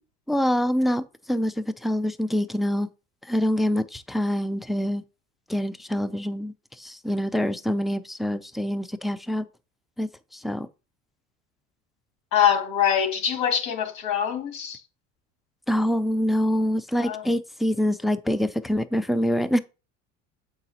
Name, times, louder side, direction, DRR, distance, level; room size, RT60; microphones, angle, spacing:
voice 1, 0.3-2.9 3.2-5.0 5.5-9.5 10.0-10.7 15.7-19.6, equal, ahead, 0.4 m, -25 dB
voice 2, 12.3-14.8 17.0-17.2, left 9 dB, 70° left, 2.1 m, -24 dB
7.4 x 4.9 x 2.8 m
hypercardioid pair, 80°, 37 cm